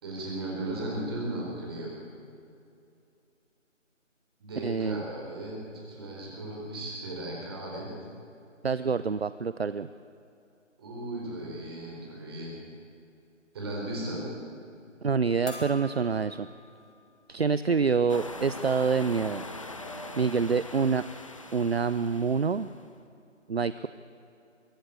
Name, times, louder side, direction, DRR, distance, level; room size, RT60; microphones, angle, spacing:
voice 1, 0.0-1.9 4.4-5.6 5.9-7.9 10.8-12.5 13.5-14.2, right 1 dB, 20° right, -3 dB, 4.4 m, -36 dB
voice 2, 4.6-5.0 8.6-9.9 15.0-16.5 17.3-19.4 20.2-21.0 21.5-22.7 23.5-23.9, right 5 dB, 55° right, 14 dB, 0.6 m, -26 dB
sound 1, 15.5-17.1 17.5-17.6 19.1-19.2 19.5-20.2, left 1 dB, 65° left, 5.5 m, -45 dB
sound 2, 18.1-22.8, left 2 dB, 25° left, 1.0 m, -42 dB
23.0 x 16.0 x 8.7 m, 2.6 s
figure-of-eight pair, 165°, 38 cm